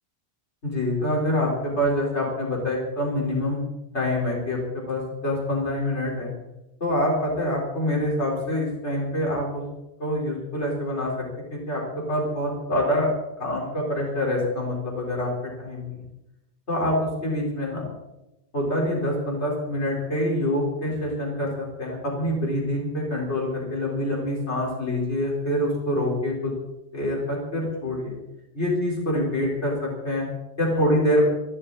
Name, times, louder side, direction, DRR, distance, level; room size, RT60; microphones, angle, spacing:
voice 1, 0.6-3.6 3.9-6.3 6.8-9.6 10.0-11.8 12.1-13.1 13.4-15.3 15.6-16.0 16.7-17.9 18.5-26.5 26.9-28.1 28.5-30.2 30.6-31.3, left 1 dB, 85° left, -2 dB, 4.8 m, -26 dB
26.0 x 12.0 x 4.2 m, 0.95 s
omnidirectional pair, 1.1 m